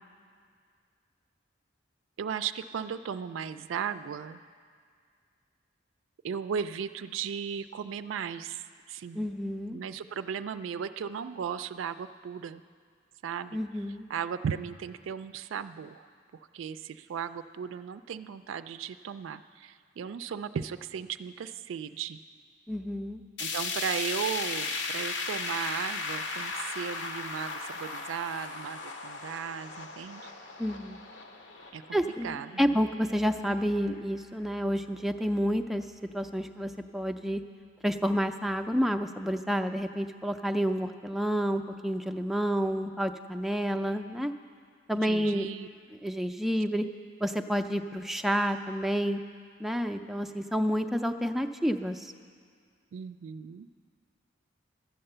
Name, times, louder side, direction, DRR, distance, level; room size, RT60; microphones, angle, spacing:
voice 1, 2.2-4.4 6.2-9.3 9.7-12.6 13.2-13.6 14.1-16.1 16.5-22.2 23.4-30.3 31.7-32.8 44.9-45.7 52.9-53.7, right 7 dB, 85° right, 11 dB, 0.3 m, -36 dB
voice 2, 9.1-9.8 13.5-14.1 22.7-23.2 30.6-31.0 31.9-35.8 36.1-37.4 37.8-44.3 44.9-45.5 46.0-46.9 47.2-49.2 49.6-52.1, equal, ahead, 6 dB, 0.3 m, -29 dB
sound 1, 23.4-33.5 33.9-34.0 34.4-34.5 35.4-35.5, left 3 dB, 70° left, 0.9 m, -36 dB
12.0 x 8.8 x 6.7 m, 2.1 s
head